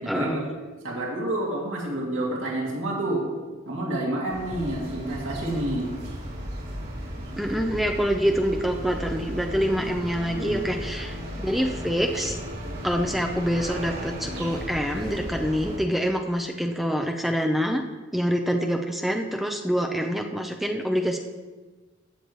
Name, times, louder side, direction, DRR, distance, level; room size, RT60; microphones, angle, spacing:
voice 1, 0.0-0.4 0.8-3.2 3.7-5.9 10.3-10.7, right 1 dB, 80° right, -3 dB, 2.5 m, -29 dB
sound 1, 4.3-15.8, equal, 55° right, 2.9 m, -35 dB
voice 2, 7.4-12.4 12.8-17.8 18.1-21.2, equal, ahead, 3 dB, 0.5 m, -26 dB
14.5 x 8.1 x 3.1 m, 1.3 s
head